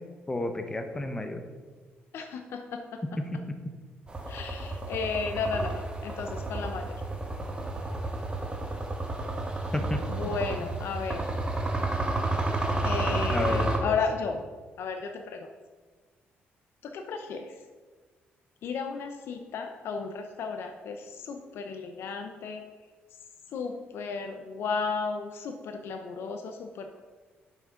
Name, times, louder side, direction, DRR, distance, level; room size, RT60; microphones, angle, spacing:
voice 1, 0.3-1.4 3.3-3.4 9.7-10.0 13.3-14.0, left 1 dB, 15° left, 6 dB, 0.8 m, -31 dB
voice 2, 2.1-3.0 4.3-6.9 10.1-11.2 12.8-14.4 14.8-15.5 16.8-17.5 18.6-22.6 23.5-27.0, left 5 dB, 75° left, 5 dB, 0.6 m, -34 dB
sound 1, 4.1-13.8, right 2 dB, 20° right, 1.2 m, -31 dB
7.1 x 5.9 x 5.0 m, 1.4 s
cardioid pair, 115°, 4 cm